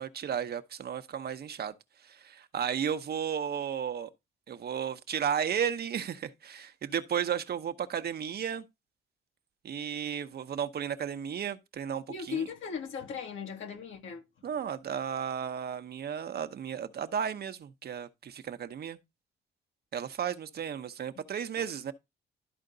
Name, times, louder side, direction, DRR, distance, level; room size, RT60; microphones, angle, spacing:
voice 1, 0.0-1.7 2.0-4.1 4.5-8.6 9.6-12.5 14.4-19.0 19.9-21.9, right 8 dB, 55° right, 0.9 m, -34 dB
voice 2, 12.1-14.2, left 6 dB, 80° left, 2.0 m, -37 dB
12.0 x 4.4 x 3.9 m
cardioid pair, 90°, 20 cm